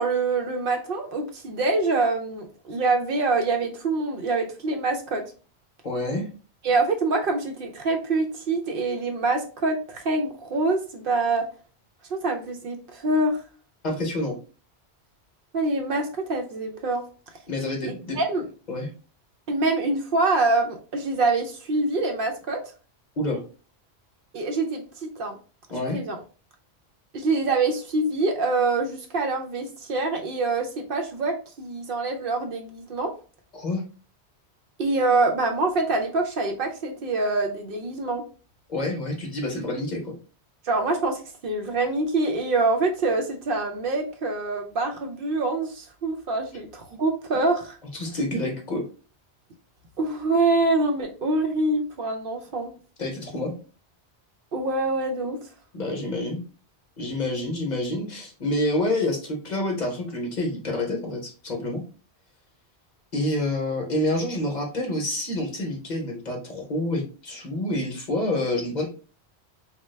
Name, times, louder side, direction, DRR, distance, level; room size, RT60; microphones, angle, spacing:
voice 1, 0.0-5.2 6.6-11.5 12.1-13.4 15.5-17.0 17.8-18.4 19.5-22.6 24.3-25.4 25.9-26.2 27.1-33.1 34.8-38.2 40.6-47.8 50.0-52.7 54.5-55.4, right 3 dB, 65° right, 3 dB, 0.7 m, -25 dB
voice 2, 5.8-6.3 13.8-14.4 17.5-18.2 18.7-18.9 23.2-23.4 25.7-26.0 33.5-33.8 38.7-40.1 47.9-48.9 53.0-53.5 55.7-56.4 57.0-61.8 63.1-68.9, left 1 dB, 45° left, 1 dB, 0.8 m, -28 dB
3.1 x 2.2 x 3.1 m, 0.37 s
omnidirectional pair, 1.1 m